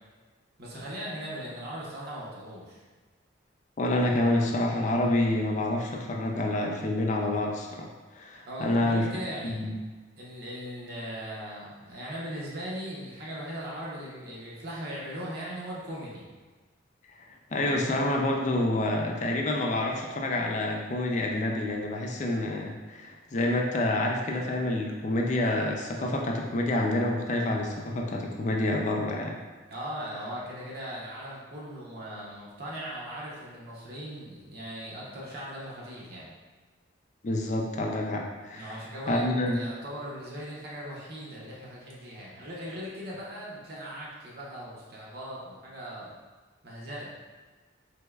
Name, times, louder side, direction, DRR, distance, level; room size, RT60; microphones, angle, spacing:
voice 1, 0.6-2.8 8.4-9.6 10.2-16.2 29.7-36.3 38.5-39.3 39.5-46.1 46.6-47.1, equal, 55° right, -5 dB, 0.7 m, -39 dB
voice 2, 3.8-9.1 9.4-9.8 17.5-29.4 37.2-38.7 39.1-39.6, left 1 dB, 40° left, 0 dB, 0.4 m, -28 dB
3.4 x 3.0 x 2.3 m, 1.3 s
head